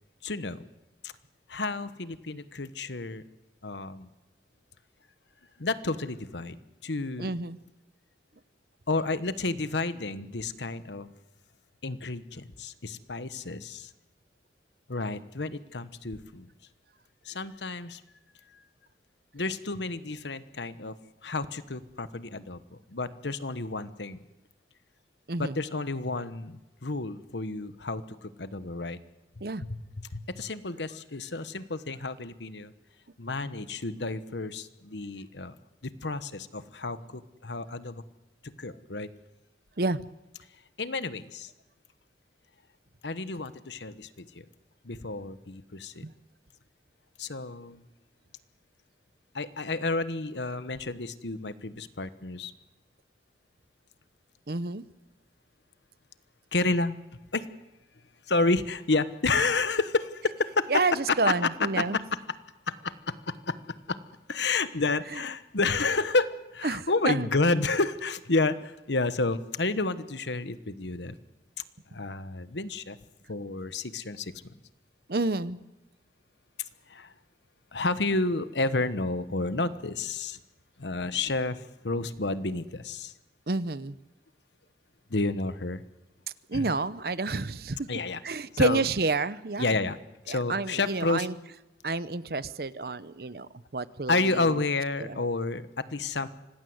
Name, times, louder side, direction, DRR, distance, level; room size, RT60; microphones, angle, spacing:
voice 1, 0.2-0.6 1.0-1.1 1.5-3.2 3.6-4.1 5.6-7.3 8.9-11.1 11.8-13.9 14.9-16.5 17.3-18.0 19.3-20.9 21.2-22.6 22.9-24.2 25.4-29.0 29.6-32.7 33.2-35.5 35.8-38.0 38.4-39.1 40.8-41.5 43.0-44.2 44.8-46.0 47.2-47.8 49.3-52.5 56.5-57.0 57.3-57.5 58.3-60.7 61.2-61.3 61.8-62.0 62.7-63.6 63.9-64.0 64.3-71.2 71.9-73.0 73.3-74.3 76.9-77.1 77.7-80.4 80.8-81.6 81.8-83.1 85.1-85.8 86.5-86.7 87.9-88.2 88.5-88.9 89.6-90.0 90.3-91.3 94.1-96.3, left 3 dB, 80° left, 13 dB, 1.2 m, -30 dB
voice 2, 7.2-7.6 25.3-25.6 29.4-29.6 39.8-40.0 46.0-46.1 54.5-54.8 60.7-62.0 65.1-65.2 66.6-67.3 75.1-75.6 83.5-84.0 86.5-87.9 88.2-89.8 90.3-91.3 91.8-94.6 95.0-95.2, right 3 dB, 60° right, 16 dB, 0.9 m, -29 dB
25.5 x 18.5 x 8.0 m, 1.0 s
head